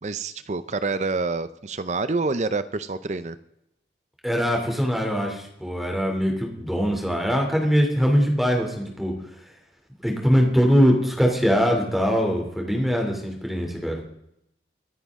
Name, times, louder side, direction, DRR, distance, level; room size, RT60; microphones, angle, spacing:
voice 1, 0.0-3.4, right 3 dB, 40° right, 13 dB, 0.5 m, -27 dB
voice 2, 4.2-9.1 10.0-14.0, equal, ahead, 1 dB, 2.8 m, -22 dB
24.0 x 9.3 x 3.6 m, 0.80 s
head